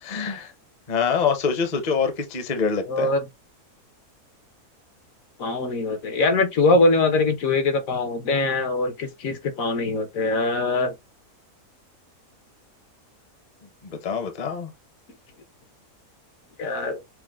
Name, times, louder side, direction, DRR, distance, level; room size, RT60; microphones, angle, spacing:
voice 1, 0.0-0.5 0.9-3.1 13.8-14.7, left 6 dB, 40° left, 0.7 m, -25 dB
voice 2, 2.9-3.2 5.4-10.9 16.6-17.0, left 2 dB, 65° left, 1.2 m, -22 dB
6.0 x 2.1 x 2.3 m
omnidirectional pair, 1.6 m